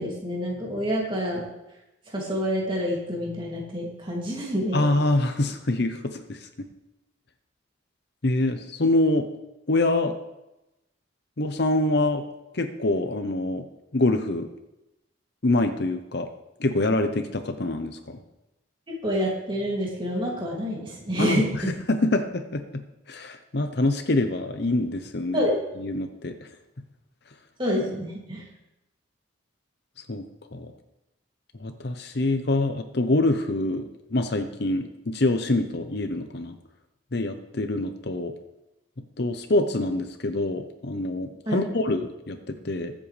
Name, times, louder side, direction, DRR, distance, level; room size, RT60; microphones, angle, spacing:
voice 1, 0.0-1.4 2.1-4.8 19.0-21.4 25.3-25.6 27.6-28.4 41.5-41.6, equal, 25° right, -3 dB, 2.6 m, -27 dB
voice 2, 4.7-6.7 8.2-9.3 9.7-10.1 11.4-12.2 12.5-13.6 13.9-14.5 15.4-16.3 16.6-18.2 21.2-22.6 23.1-25.5 25.8-26.5 30.1-30.3 30.5-30.7 31.6-36.5 37.1-38.3 39.2-42.9, left 2 dB, 55° left, 7 dB, 0.8 m, -25 dB
21.5 x 7.6 x 3.4 m, 0.94 s
head